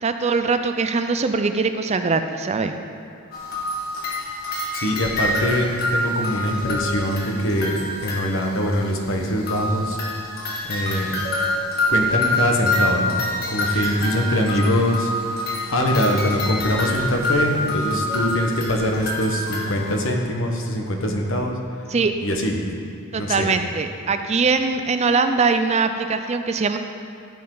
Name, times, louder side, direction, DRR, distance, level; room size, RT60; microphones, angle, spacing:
voice 1, 0.0-2.7 13.7-13.8 21.9-22.1 23.1-26.8, right 4 dB, 30° right, 8 dB, 0.4 m, -22 dB
sound 1, 3.3-8.7 9.5-20.0, left 1 dB, 45° left, 1.5 m, -26 dB
voice 2, 4.7-10.0 10.6-11.1 11.9-13.1 13.5-21.6 22.2-22.6 23.2-23.5, left 1 dB, 60° left, 1 dB, 1.3 m, -23 dB
14.0 x 7.5 x 3.9 m, 2.6 s
head